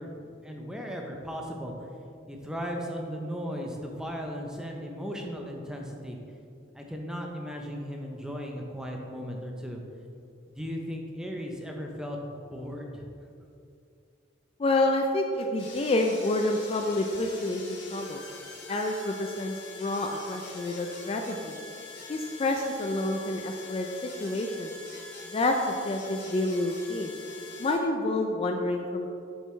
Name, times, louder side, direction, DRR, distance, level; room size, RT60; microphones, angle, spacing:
voice 1, 0.0-1.9 2.3-6.2 6.7-9.8 10.5-13.0, equal, 5° right, 1 dB, 0.6 m, -36 dB
voice 2, 14.6-18.2 18.7-21.6 22.1-23.9 24.2-24.7 25.3-27.1 27.6-29.1, left 2 dB, 30° left, 3 dB, 0.3 m, -28 dB
sound 1, 15.6-27.7, left 3 dB, 65° left, 1.4 m, -44 dB
6.6 x 6.3 x 3.1 m, 2.5 s
head